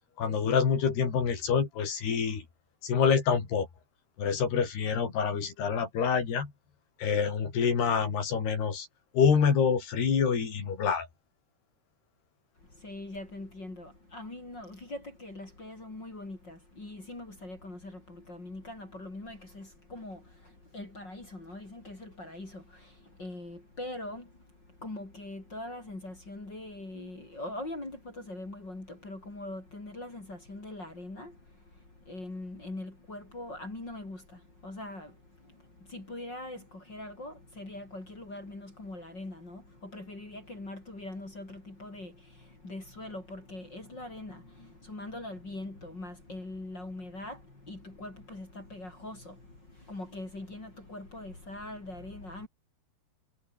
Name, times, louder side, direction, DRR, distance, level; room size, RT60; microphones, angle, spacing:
voice 1, 0.2-2.4 2.8-3.7 4.2-6.5 7.0-8.9 9.1-11.1, left 6 dB, 75° left, 6.5 m, -26 dB
voice 2, 12.6-52.5, left 2 dB, 25° left, 6.1 m, -42 dB
omnidirectional pair, 4.6 m